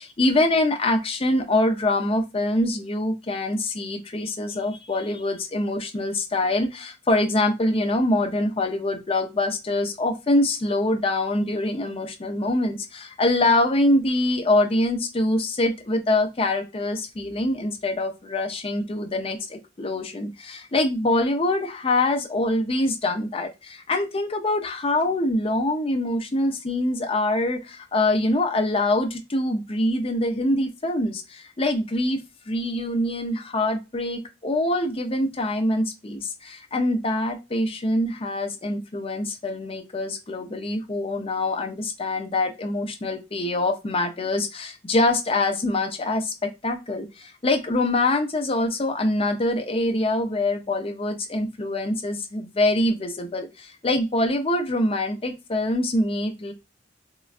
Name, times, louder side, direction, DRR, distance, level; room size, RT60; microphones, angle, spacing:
voice 1, 0.0-56.5, left 2 dB, 30° left, 5 dB, 0.6 m, -24 dB
3.7 x 2.1 x 2.4 m, 0.24 s
head